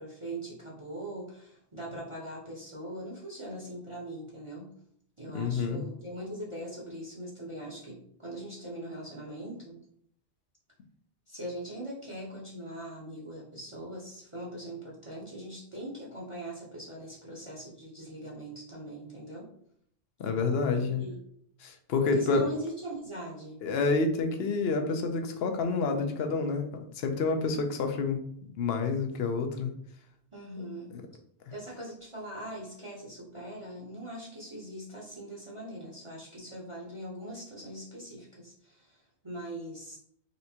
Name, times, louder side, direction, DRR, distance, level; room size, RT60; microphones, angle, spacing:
voice 1, 0.0-4.7 5.2-9.8 11.3-19.5 20.7-21.2 22.0-23.6 27.4-27.6 30.3-31.0 31.5-40.0, right 1 dB, 30° right, -5 dB, 0.9 m, -41 dB
voice 2, 5.3-5.8 20.2-21.0 21.6-22.5 23.6-29.7 30.9-31.0, left 4 dB, 70° left, 5 dB, 0.9 m, -28 dB
4.1 x 3.3 x 2.8 m, 0.68 s
omnidirectional pair, 1.1 m